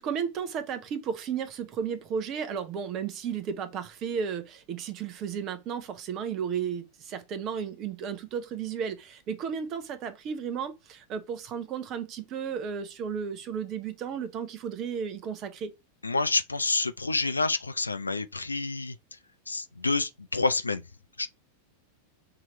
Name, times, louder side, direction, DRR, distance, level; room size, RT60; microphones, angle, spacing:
voice 1, 0.0-15.7, right 7 dB, 35° right, 0.9 m, -34 dB
voice 2, 16.0-18.9 19.5-20.8 21.2-21.3, left 3 dB, 80° left, 0.3 m, -28 dB
6.0 x 2.9 x 3.0 m
figure-of-eight pair, 90°, 0 cm